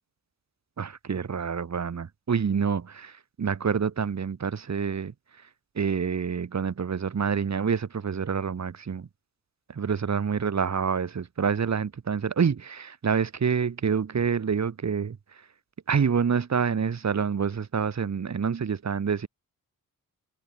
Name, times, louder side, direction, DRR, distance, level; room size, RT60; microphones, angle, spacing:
voice 1, 0.8-5.1 5.8-9.1 9.7-15.2 15.9-19.3, right 6 dB, 50° right, 7.1 m, -27 dB
wide cardioid pair, 155°, 34 cm